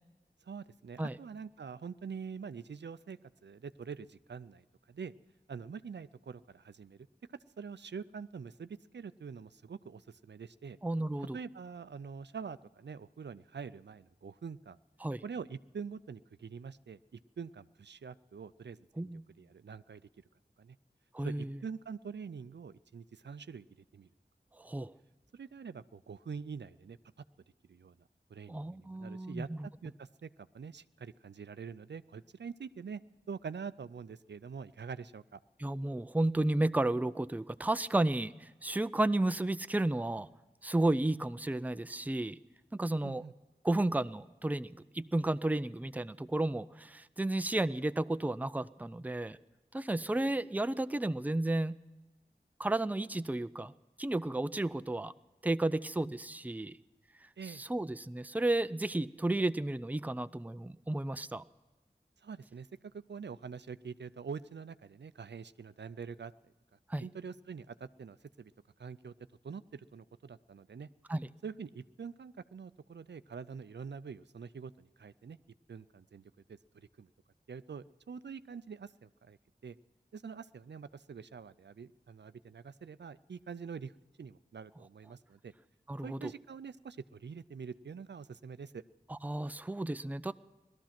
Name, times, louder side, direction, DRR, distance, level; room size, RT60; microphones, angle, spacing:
voice 1, 0.4-5.1 5.5-7.1 7.6-10.8 11.3-14.8 15.2-19.1 19.4-20.0 20.6-20.8 21.2-23.7 23.9-24.1 25.3-27.0 27.7-28.0 28.3-29.5 29.8-33.0 33.3-35.4 43.0-43.3 57.4-57.6 62.2-62.7 62.9-66.3 67.0-68.5 68.8-69.1 69.4-70.9 71.4-75.4 75.7-77.1 77.5-79.4 79.6-79.8 80.1-83.9 84.2-85.5 86.0-88.8, right 6 dB, 85° right, 15 dB, 0.4 m, -45 dB
voice 2, 10.8-11.4 15.0-15.2 19.0-19.2 21.1-21.6 24.6-24.9 28.5-29.7 35.6-40.3 40.6-42.4 42.7-43.2 43.6-49.4 49.7-51.8 52.6-53.7 54.0-55.1 55.4-56.8 57.5-61.4 66.9-67.1 71.1-71.3 85.9-86.3 89.1-90.3, right 2 dB, 10° right, 14 dB, 0.4 m, -32 dB
18.0 x 13.0 x 5.9 m, 1.2 s
wide cardioid pair, 45°, 18 cm